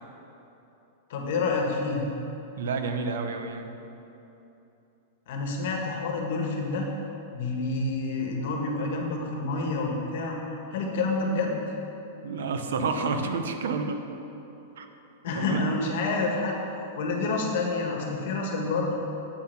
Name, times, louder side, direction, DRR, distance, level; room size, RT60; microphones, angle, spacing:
voice 1, 1.1-2.1 5.3-6.9 7.3-10.4 10.7-11.5 15.2-16.6 17.0-18.9, left 3 dB, 60° left, 1 dB, 1.4 m, -28 dB
voice 2, 2.6-3.7 12.2-14.0 14.8-14.9 15.3-15.6, right 4 dB, 85° right, 6 dB, 0.8 m, -29 dB
8.3 x 5.8 x 5.8 m, 3.0 s
supercardioid pair, 165°, 0 cm